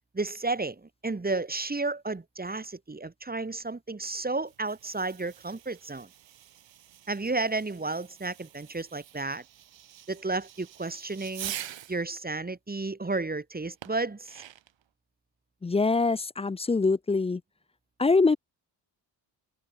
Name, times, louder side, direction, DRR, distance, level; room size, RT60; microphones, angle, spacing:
voice 1, 0.1-6.1 7.1-9.4 10.1-11.5 11.9-14.4, right 3 dB, 20° right, 1.9 m, -32 dB
Fireworks, 4.4-12.0 13.8-14.8, right 11 dB, 80° right, 4.6 m, -45 dB
voice 2, 15.6-17.4 18.0-18.4, left 3 dB, 15° left, 0.4 m, -24 dB
cardioid pair, 70°, 45 cm